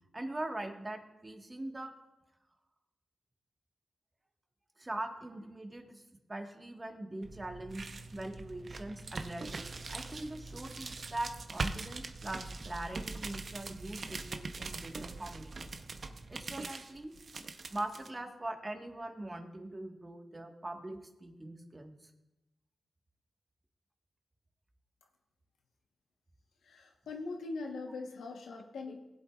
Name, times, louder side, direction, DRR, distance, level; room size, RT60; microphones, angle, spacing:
voice 1, 0.1-1.9 4.8-6.0 6.3-15.7 16.3-17.1 17.7-21.9, right 1 dB, 25° right, 4 dB, 1.5 m, -42 dB
sound 1, 7.2-18.1, right 3 dB, 55° right, 0.8 m, -42 dB
voice 2, 26.6-29.0, left 3 dB, 85° left, 3 dB, 1.2 m, -41 dB
19.0 x 8.1 x 2.4 m, 0.99 s
cardioid pair, 55°, 0 cm